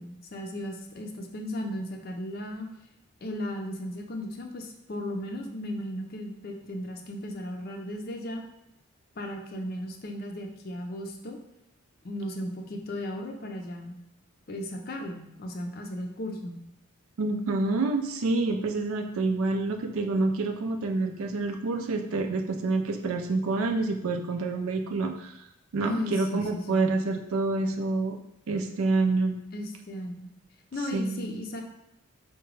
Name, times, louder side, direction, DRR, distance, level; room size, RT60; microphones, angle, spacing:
voice 1, 0.0-2.7 3.2-8.4 9.2-11.4 12.0-14.0 14.5-16.6 25.8-26.8 29.5-30.3 30.7-31.6, left 1 dB, 45° left, 3 dB, 0.5 m, -35 dB
voice 2, 17.2-25.4 25.7-28.2 28.5-29.4 30.9-31.4, right 3 dB, 80° right, 5 dB, 0.4 m, -27 dB
4.8 x 2.2 x 3.1 m, 0.85 s
head